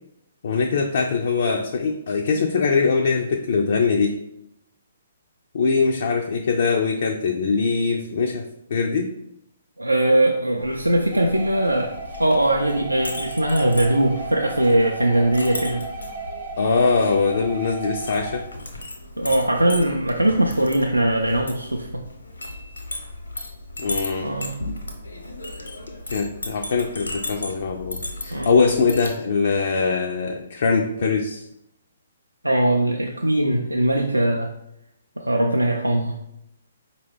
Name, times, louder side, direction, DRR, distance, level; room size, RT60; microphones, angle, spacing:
voice 1, 0.4-4.2 5.5-8.5 8.7-9.1 16.6-18.4 23.8-24.3 26.1-31.4, left 4 dB, 50° left, 3 dB, 0.3 m, -22 dB
voice 2, 9.8-15.8 19.2-22.0 24.2-24.6 28.3-28.5 32.4-34.5 35.2-36.1, right 1 dB, 85° right, 1 dB, 0.3 m, -21 dB
Chink clink, 10.6-29.2, left 2 dB, 75° left, 0.8 m, -36 dB
sound 1, 11.1-18.4, right 3 dB, 35° right, 0.6 m, -34 dB
4.9 x 2.2 x 3.4 m, 0.82 s
figure-of-eight pair, 130°, 0 cm